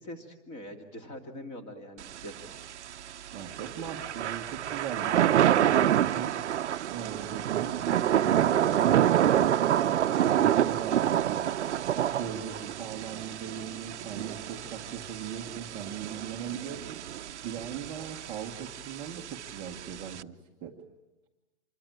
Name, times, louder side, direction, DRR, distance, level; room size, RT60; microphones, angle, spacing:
voice 1, 0.0-2.6, left 1 dB, 20° left, 6 dB, 2.4 m, -43 dB
Thunder / Rain, 2.0-20.2, right 11 dB, 85° right, 0.9 m, -28 dB
voice 2, 3.3-6.4 6.9-9.2 9.8-11.5 12.2-17.0 17.4-20.8, right 8 dB, 15° right, 0 dB, 1.1 m, -39 dB
26.5 x 21.5 x 8.9 m, 1.1 s
hypercardioid pair, 175°, 34 cm